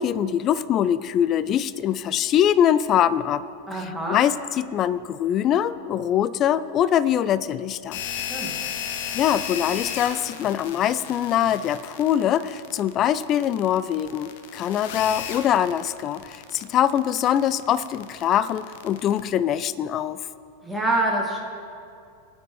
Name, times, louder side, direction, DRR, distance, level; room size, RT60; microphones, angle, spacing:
voice 1, 0.0-3.4 3.7-8.0 9.1-20.2, left 10 dB, 30° left, 16 dB, 0.3 m, -23 dB
voice 2, 3.7-4.2 8.1-8.5 20.6-21.4, right 2 dB, ahead, -2 dB, 1.9 m, -26 dB
sound 1, 7.9-19.2, left 8 dB, 50° left, 0.8 m, -34 dB
19.0 x 9.3 x 3.1 m, 2.3 s
figure-of-eight pair, 90°, 0 cm